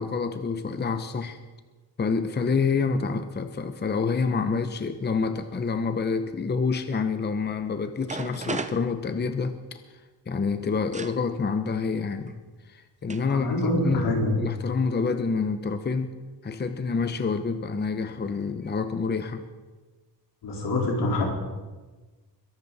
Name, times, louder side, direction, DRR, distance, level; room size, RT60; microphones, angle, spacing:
voice 1, 0.0-1.4 2.0-9.8 10.3-12.4 12.7-13.5 13.8-16.1 16.4-19.4, left 5 dB, 25° left, 9 dB, 0.8 m, -27 dB
sound 1, 7.7-7.8 8.0-9.7 10.9-11.2 12.3-12.4 13.1-13.3 13.6-14.1, right 4 dB, 20° right, 0.7 m, -35 dB
voice 2, 13.2-14.3 20.4-21.2, left 2 dB, 85° left, -2 dB, 4.3 m, -25 dB
22.5 x 12.0 x 4.1 m, 1.3 s
wide cardioid pair, 135°, 40 cm